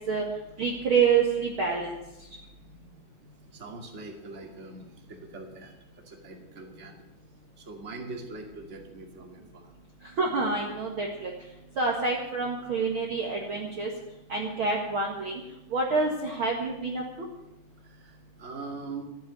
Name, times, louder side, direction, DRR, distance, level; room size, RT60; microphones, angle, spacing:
voice 1, 0.6-2.0 10.2-11.3 11.8-13.9 14.3-15.3 15.7-17.0, right 4 dB, 45° right, -1 dB, 2.1 m, -27 dB
voice 2, 3.3-7.1 7.6-9.7 17.8-19.0, right 3 dB, 25° right, 1 dB, 2.2 m, -43 dB
14.0 x 9.4 x 9.2 m, 0.94 s
omnidirectional pair, 3.9 m